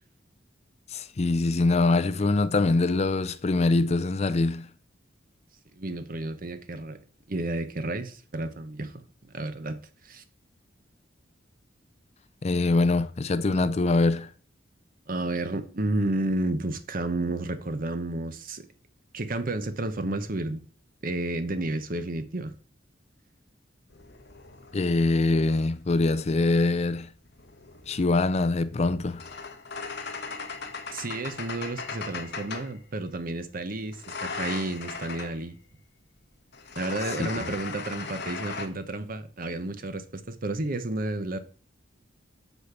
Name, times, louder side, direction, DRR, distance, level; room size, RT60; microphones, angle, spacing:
voice 1, 0.9-4.7 12.4-14.3 24.7-27.1 27.9-29.3 37.2-37.3, left 3 dB, 35° left, 0.4 m, -24 dB
voice 2, 5.8-7.0 7.3-9.8 10.0-10.2 15.1-18.7 19.1-20.6 21.0-22.5 30.9-35.6 36.7-41.4, right 2 dB, 50° right, 0.9 m, -31 dB
sound 1, 23.9-26.0 27.2-32.8 33.9-35.4 36.5-38.7, left 4 dB, 60° left, 1.2 m, -38 dB
8.1 x 4.3 x 6.9 m
head